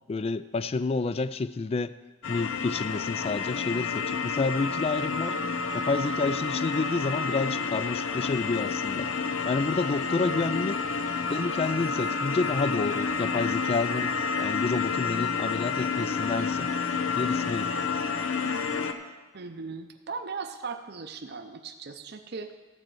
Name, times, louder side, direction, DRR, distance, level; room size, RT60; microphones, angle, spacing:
voice 1, 0.1-2.0 2.3-5.4 5.7-9.1 9.4-10.8 11.3-16.7 17.2-17.7, left 3 dB, 30° left, 15 dB, 0.3 m, -29 dB
sound 1, 2.2-18.9, left 5 dB, 90° left, 0.7 m, -29 dB
voice 2, 10.3-10.7 19.3-22.6, right 4 dB, 55° right, 7 dB, 0.7 m, -38 dB
13.0 x 4.4 x 7.7 m, 1.2 s
head